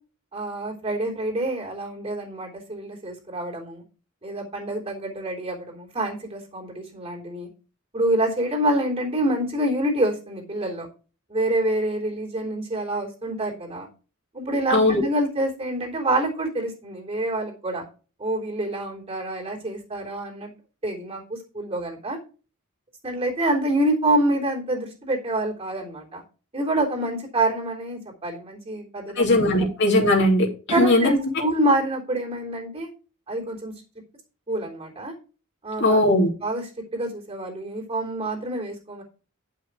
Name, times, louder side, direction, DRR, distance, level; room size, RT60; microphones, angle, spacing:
voice 1, 0.3-3.8 4.2-7.5 7.9-10.9 11.3-13.9 14.3-17.8 18.2-20.5 20.8-22.2 23.0-26.2 26.5-29.3 30.7-32.9 33.3-33.7 34.5-35.1 35.6-36.0 36.4-36.6 36.9-39.0, right 1 dB, 30° right, -1 dB, 3.4 m, -26 dB
voice 2, 14.7-15.0 29.1-31.1 35.8-36.3, left 1 dB, 55° left, -1 dB, 2.8 m, -19 dB
10.5 x 5.9 x 4.6 m, 0.36 s
head